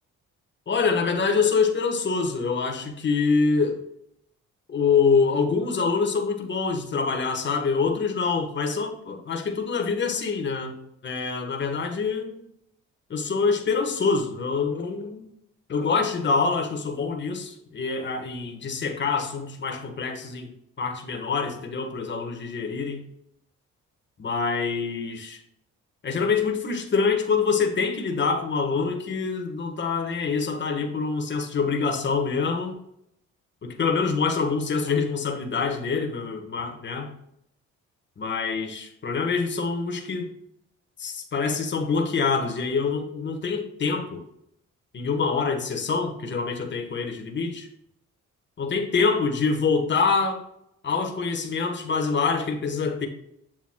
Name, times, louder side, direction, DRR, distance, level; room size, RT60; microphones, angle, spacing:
voice 1, 0.7-3.8 4.7-12.4 13.1-15.3 15.7-20.5 20.8-23.0 24.2-25.4 26.0-32.8 33.6-37.1 38.2-40.3 41.0-44.2 44.9-47.7 48.6-50.4 50.8-53.1, left 5 dB, 40° left, 3 dB, 1.2 m, -25 dB
7.4 x 7.0 x 2.2 m, 0.75 s
cardioid pair, 90°, 30 cm